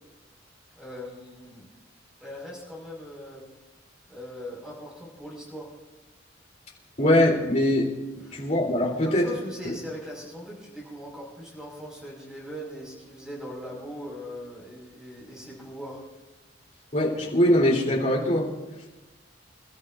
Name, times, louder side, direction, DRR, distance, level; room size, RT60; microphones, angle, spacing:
voice 1, 0.8-1.7 2.2-3.4 4.1-5.7 8.2-8.4 9.0-16.0, equal, 5° right, -3 dB, 5.2 m, -40 dB
voice 2, 7.0-7.9 8.3-9.3 16.9-18.5, left 1 dB, 40° left, -2 dB, 3.5 m, -22 dB
28.5 x 13.5 x 2.6 m, 1.1 s
head